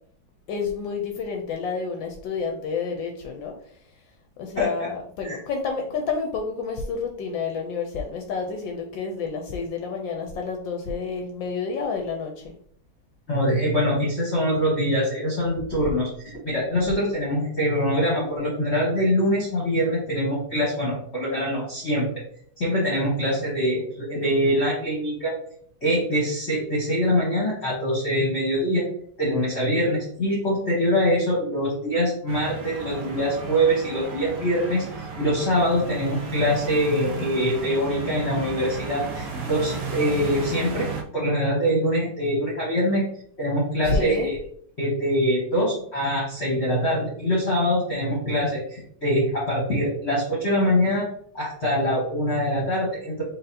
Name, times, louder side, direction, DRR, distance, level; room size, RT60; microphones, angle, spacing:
voice 1, 0.5-3.8 4.4-12.5 43.8-44.3, left 4 dB, 75° left, 3 dB, 1.2 m, -29 dB
voice 2, 4.6-4.9 5.2-5.4 13.3-22.1 22.6-25.3 25.8-28.9 29.2-43.0 43.4-44.4 44.8-51.1 51.3-53.2, equal, 40° left, -5 dB, 1.1 m, -24 dB
sound 1, 32.3-41.0, right 4 dB, 80° right, 0.7 m, -34 dB
4.1 x 3.8 x 2.7 m, 0.63 s
omnidirectional pair, 2.2 m